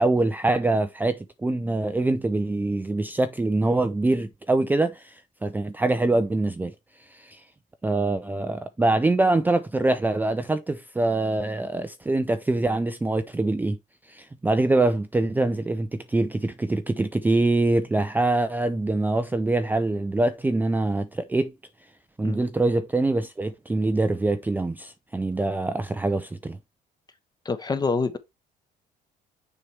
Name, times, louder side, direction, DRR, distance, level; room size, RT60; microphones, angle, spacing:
voice 1, 0.0-6.7 7.1-7.4 7.8-13.8 14.1-21.5 22.2-26.6, right 2 dB, 10° right, 0.4 m, -24 dB
voice 2, 27.4-28.2, left 4 dB, 25° left, 1.0 m, -26 dB
6.8 x 4.5 x 3.3 m
cardioid pair, 110°, 17 cm